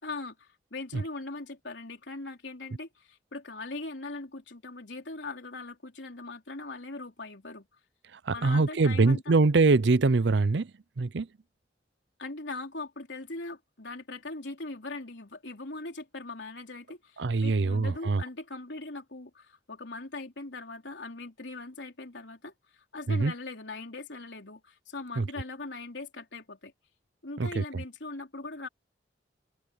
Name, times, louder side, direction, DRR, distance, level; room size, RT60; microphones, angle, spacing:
voice 1, 0.0-7.7 8.3-9.3 12.2-26.7 27.2-28.7, left 2 dB, 80° left, 3.6 m, -40 dB
voice 2, 8.3-10.7 11.0-11.3 17.2-18.2 23.1-23.3 25.2-25.3 27.4-27.6, right 3 dB, 75° right, 0.6 m, -23 dB
open air
head